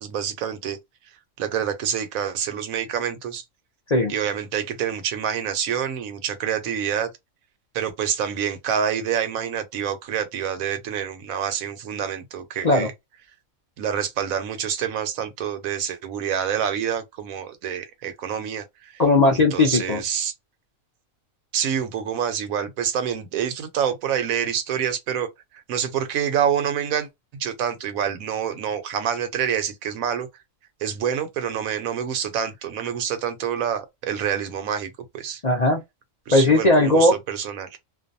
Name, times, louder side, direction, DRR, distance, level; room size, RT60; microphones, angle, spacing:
voice 1, 0.0-0.8 1.4-3.4 4.1-7.1 7.7-12.9 13.8-18.9 19.5-20.3 21.5-25.3 25.7-27.1 27.3-30.3 30.8-35.4 36.3-37.8, right 8 dB, 85° right, 1.1 m, -27 dB
voice 2, 19.0-20.0 35.4-35.8 36.3-37.1, left 2 dB, 45° left, 0.5 m, -17 dB
2.5 x 2.2 x 2.5 m
omnidirectional pair, 1.4 m